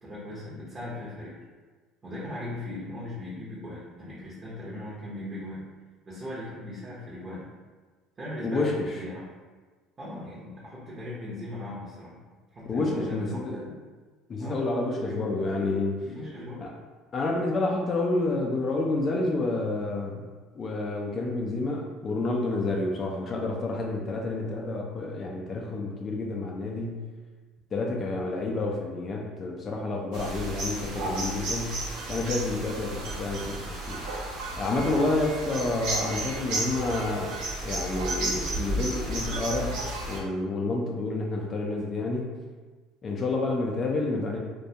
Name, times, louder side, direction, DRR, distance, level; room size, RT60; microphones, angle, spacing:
voice 1, 0.0-1.4 2.0-5.7 6.1-7.5 8.2-8.7 9.0-9.2 10.0-12.2 12.5-13.8 14.4-14.7 14.9-15.4 16.0-16.7, left 1 dB, 30° right, -8 dB, 0.7 m, -38 dB
voice 2, 8.4-9.0 12.7-13.6 14.3-16.1 16.6-16.7 17.1-20.3 20.6-27.1 27.7-31.8 32.1-34.0 34.6-37.4 37.6-42.4 43.0-44.4, left 2 dB, 35° left, 0 dB, 0.3 m, -29 dB
sound 1, 30.1-40.2, right 2 dB, 65° right, 0.6 m, -33 dB
2.3 x 2.2 x 2.7 m, 1.4 s
supercardioid pair, 115°, 0 cm